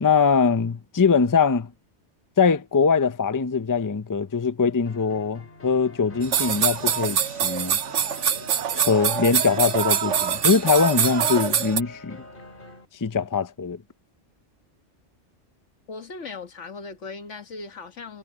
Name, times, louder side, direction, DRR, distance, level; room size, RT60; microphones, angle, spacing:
voice 1, 0.0-1.7 2.4-7.8 8.7-12.2 13.0-13.8, left 5 dB, 25° left, 0.5 m, -22 dB
sound 1, 4.9-12.9, left 2 dB, 45° left, 2.8 m, -45 dB
sound 2, 6.2-11.8, right 8 dB, 90° right, 1.3 m, -24 dB
voice 2, 15.9-18.2, left 4 dB, 85° left, 1.7 m, -38 dB
omnidirectional pair, 1.2 m